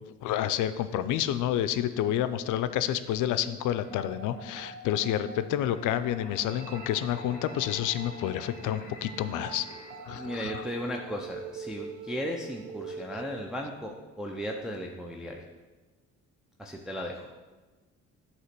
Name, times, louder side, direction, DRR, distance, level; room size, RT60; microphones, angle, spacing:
voice 1, 0.2-9.7 10.0-10.6, left 11 dB, 80° left, 12 dB, 0.5 m, -29 dB
sound 1, 3.8-10.6, left 1 dB, 25° left, 1.2 m, -47 dB
sound 2, 6.5-13.5, right 6 dB, 75° right, 0.5 m, -45 dB
voice 2, 10.1-15.4 16.6-17.3, equal, ahead, 0 dB, 0.5 m, -36 dB
8.0 x 3.0 x 5.9 m, 1.2 s
cardioid pair, 90°, 30 cm